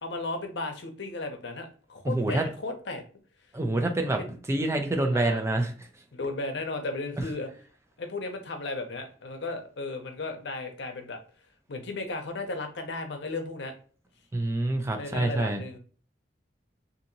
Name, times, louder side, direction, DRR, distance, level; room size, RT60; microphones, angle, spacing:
voice 1, 0.0-3.0 4.2-4.3 5.1-5.4 6.1-7.5 8.0-11.2 11.7-13.7 15.0-15.8, left 3 dB, 70° left, 5 dB, 0.6 m, -35 dB
voice 2, 2.0-2.5 3.5-5.7 7.2-7.3 14.3-15.6, right 2 dB, 15° right, 5 dB, 0.4 m, -27 dB
2.8 x 2.6 x 2.6 m, 0.41 s
head